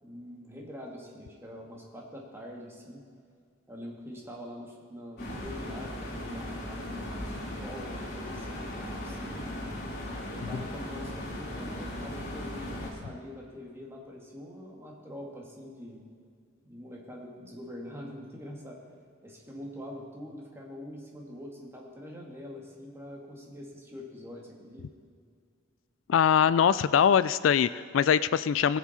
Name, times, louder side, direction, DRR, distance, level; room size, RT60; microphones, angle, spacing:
voice 1, 0.0-3.0 3.7-9.5 10.1-16.0 16.6-18.8 19.2-24.9, left 1 dB, 15° right, -2 dB, 2.0 m, -44 dB
sound 1, 5.2-12.9, left 1 dB, 55° left, 3.3 m, -37 dB
voice 2, 26.1-28.8, left 8 dB, 75° left, 16 dB, 0.3 m, -22 dB
20.0 x 7.2 x 4.3 m, 2.2 s
head